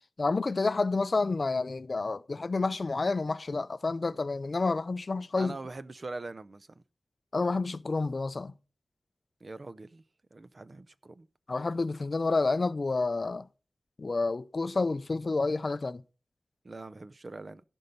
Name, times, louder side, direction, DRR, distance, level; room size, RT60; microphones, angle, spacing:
voice 1, 0.2-5.6 7.3-8.5 11.5-13.5 14.0-16.0, left 3 dB, 45° left, 0.4 m, -29 dB
voice 2, 5.4-6.8 9.4-10.0 10.3-11.3 16.6-17.6, right 3 dB, 45° right, 0.5 m, -42 dB
15.5 x 5.4 x 5.2 m
wide cardioid pair, 95°, 0 cm